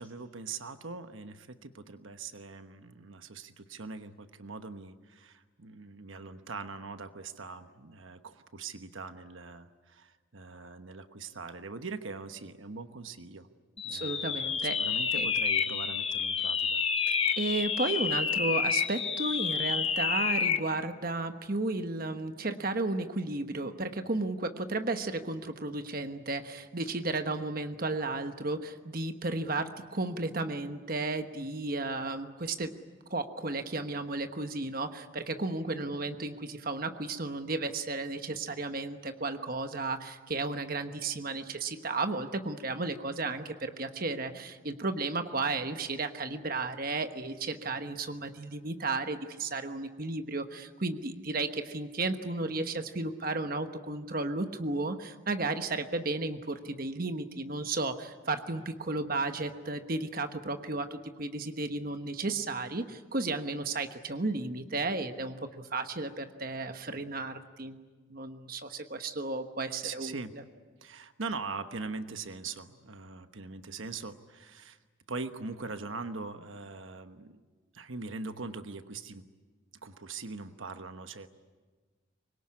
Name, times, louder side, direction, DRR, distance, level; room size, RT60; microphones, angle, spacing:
voice 1, 0.0-13.5 13.8-16.8 69.8-70.3 70.8-74.8 75.1-77.4 77.7-79.3 79.8-81.3, right 4 dB, 75° right, 9 dB, 1.1 m, -42 dB
sound 1, 13.8-20.7, left 6 dB, 30° left, 1.0 m, -29 dB
voice 2, 13.9-14.8 15.1-15.3 17.1-32.7 33.1-67.8 68.1-70.4, right 3 dB, 45° right, 7 dB, 1.2 m, -33 dB
25.0 x 21.5 x 9.8 m, 1.4 s
head